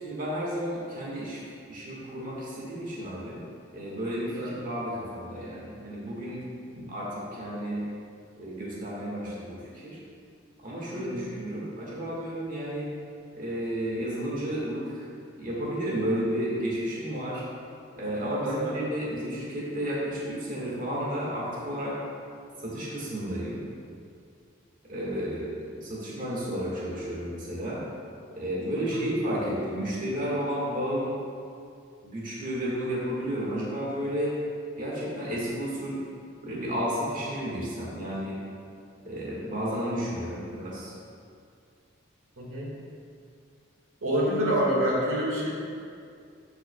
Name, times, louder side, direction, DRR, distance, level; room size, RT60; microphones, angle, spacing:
voice 1, 0.0-1.4 1.7-3.4 3.7-6.4 6.9-7.8 8.4-10.0 10.6-12.9 13.3-15.1 15.4-17.4 17.9-22.0 22.6-23.6 24.9-27.8 28.3-31.1 32.0-34.4 34.8-36.0 36.4-38.4 39.0-40.9, equal, 40° right, -6 dB, 1.6 m, -32 dB
voice 2, 4.4-4.7 6.7-6.9 10.9-11.3 18.4-18.8 28.7-29.1 42.4-42.7 44.0-45.5, equal, 90° right, -4 dB, 1.7 m, -28 dB
13.0 x 5.9 x 2.3 m, 2.3 s
head